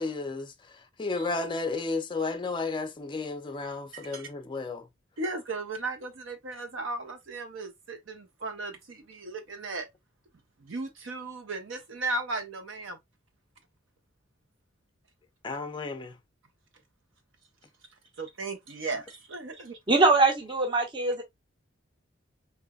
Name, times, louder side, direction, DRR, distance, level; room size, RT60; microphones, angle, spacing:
voice 1, 0.0-4.9 15.4-16.2, left 3 dB, 25° left, 0.5 m, -33 dB
voice 2, 3.9-4.3 5.2-9.9 10.6-13.0 18.2-19.8, right 2 dB, 75° right, 0.8 m, -36 dB
voice 3, 19.9-21.2, right 3 dB, 25° right, 0.8 m, -22 dB
3.4 x 3.0 x 2.2 m
head